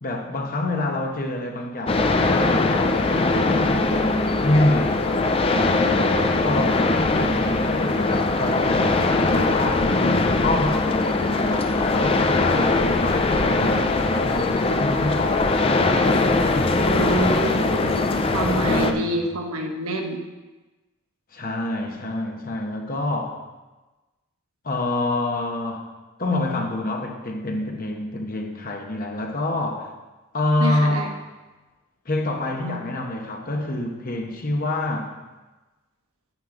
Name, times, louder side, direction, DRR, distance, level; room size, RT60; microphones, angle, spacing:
voice 1, 0.0-5.8 6.4-9.9 10.4-16.2 18.6-19.2 21.3-23.4 24.6-25.9 26.2-29.9 30.3-31.1 32.0-35.2, left 1 dB, 40° left, 2 dB, 1.2 m, -27 dB
sound 1, 1.9-18.9, left 3 dB, 25° left, 0.5 m, -21 dB
voice 2, 16.8-20.2 30.6-31.1, right 2 dB, 90° right, 2 dB, 1.3 m, -27 dB
9.6 x 9.4 x 3.9 m, 1.2 s
head